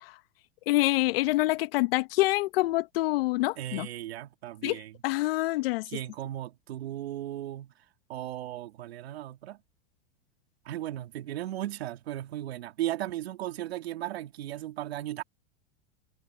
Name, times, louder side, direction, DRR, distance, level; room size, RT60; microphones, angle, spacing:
voice 1, 0.7-3.9 4.6-6.0, left 19 dB, 65° left, 1.8 m, -26 dB
voice 2, 3.6-4.9 5.9-7.7 8.1-9.6 10.7-15.2, right 13 dB, 80° right, 2.3 m, -36 dB
hypercardioid pair, 110°, 31 cm